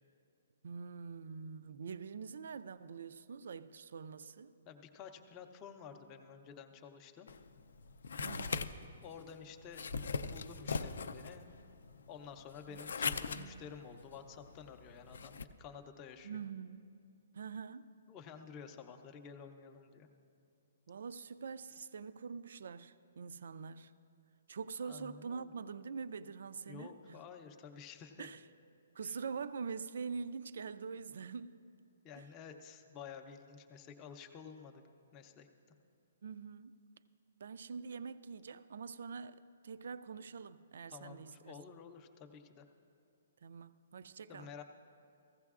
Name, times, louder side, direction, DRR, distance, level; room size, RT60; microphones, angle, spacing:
voice 1, 0.6-4.5 8.2-8.7 12.7-12.8 13.3-13.6 16.2-16.9 17.3-17.9 20.9-23.9 24.5-27.2 28.2-28.4 28.9-31.6 32.1-32.3 36.2-36.8 37.4-41.6 43.4-44.5, right 5 dB, 60° right, 0.3 m, -45 dB
voice 2, 4.7-7.3 9.0-9.9 10.3-11.4 12.1-16.4 18.1-20.1 24.8-25.5 26.7-28.3 29.0-29.2 32.0-34.8 35.1-35.5 40.9-42.6 44.3-44.6, left 6 dB, 15° left, 0.5 m, -51 dB
sound 1, 7.3-15.5, left 5 dB, 75° left, 0.4 m, -41 dB
15.5 x 15.0 x 2.4 m
hypercardioid pair, 175°, 0 cm